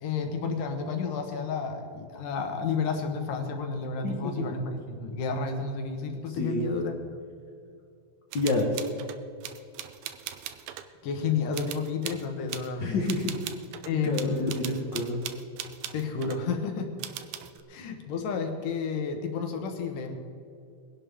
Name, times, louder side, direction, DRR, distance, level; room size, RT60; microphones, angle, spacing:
voice 1, 0.0-6.9 11.0-12.9 13.9-14.9 15.9-16.9 17.7-20.1, left 5 dB, 65° left, 4 dB, 2.7 m, -31 dB
voice 2, 6.3-6.6 8.3-8.7 12.8-13.4 13.9-15.2, left 2 dB, 90° left, 0 dB, 0.9 m, -28 dB
sound 1, 8.3-10.9 11.5-12.7 13.1-16.4 17.0-17.6, right 11 dB, 85° right, 1.6 m, -39 dB
22.0 x 11.0 x 3.7 m, 2.6 s
omnidirectional pair, 4.3 m